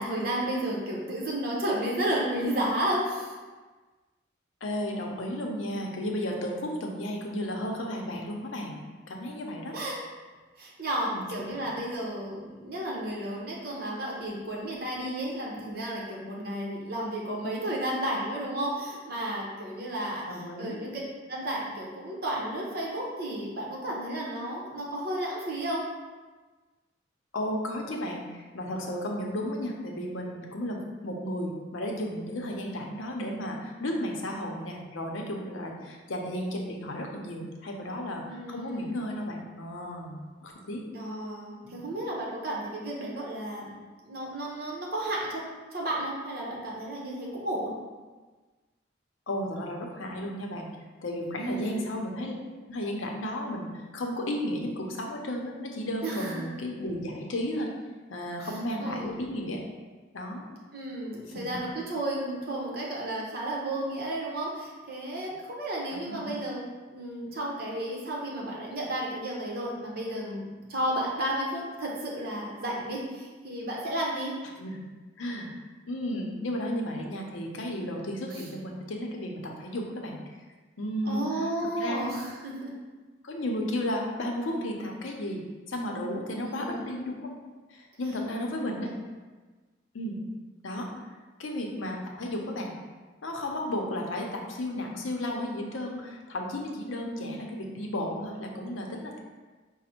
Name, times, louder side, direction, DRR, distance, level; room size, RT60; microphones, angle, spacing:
voice 1, 0.0-3.3 9.7-10.0 10.6-21.0 21.3-25.8 38.2-38.9 40.9-43.8 44.1-45.4 45.7-47.7 51.3-51.9 56.0-56.4 58.4-59.2 60.7-66.6 66.9-74.3 78.3-78.4 81.1-82.7 86.4-86.9 88.3-88.5, right 1 dB, 50° right, -3 dB, 0.9 m, -32 dB
voice 2, 4.6-8.8 9.1-9.7 11.1-11.2 20.3-20.8 27.3-40.8 41.7-41.8 49.3-50.7 51.0-52.3 52.7-57.7 58.1-59.6 60.1-60.5 61.2-61.6 65.9-66.3 74.6-74.8 75.2-75.5 75.9-80.2 80.8-81.5 81.8-82.1 83.2-87.3 87.7-88.9 89.9-90.2 90.6-90.9 91.4-92.7 93.2-99.2, left 1 dB, 90° left, 1 dB, 0.7 m, -33 dB
5.0 x 2.1 x 4.3 m, 1.3 s
head